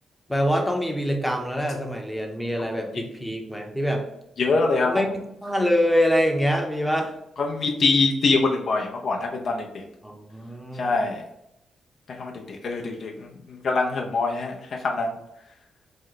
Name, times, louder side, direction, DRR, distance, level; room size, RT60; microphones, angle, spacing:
voice 1, 0.3-4.1 4.8-7.1 10.0-11.0, equal, 5° left, 2 dB, 0.7 m, -25 dB
voice 2, 4.4-5.0 7.4-9.8 10.8-11.2 12.2-15.1, left 3 dB, 65° left, 1 dB, 0.6 m, -24 dB
2.9 x 2.2 x 3.8 m, 0.79 s
supercardioid pair, 55°, 0 cm